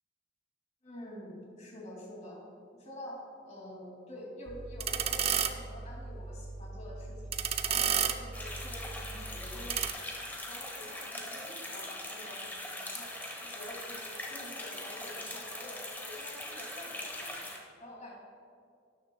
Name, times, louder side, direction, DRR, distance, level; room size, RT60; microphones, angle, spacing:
voice 1, 0.8-2.4 2.7-7.3 7.7-9.8 10.4-12.5 12.8-13.1 13.4-14.0 14.3-17.5 17.8-18.1, left 1 dB, 40° left, -3 dB, 2.4 m, -47 dB
sound 1, 4.5-9.9, right 7 dB, 30° right, 0.4 m, -33 dB
sound 2, 8.3-17.6, left 1 dB, 10° left, 1.1 m, -41 dB
12.5 x 10.0 x 2.3 m, 2.3 s
head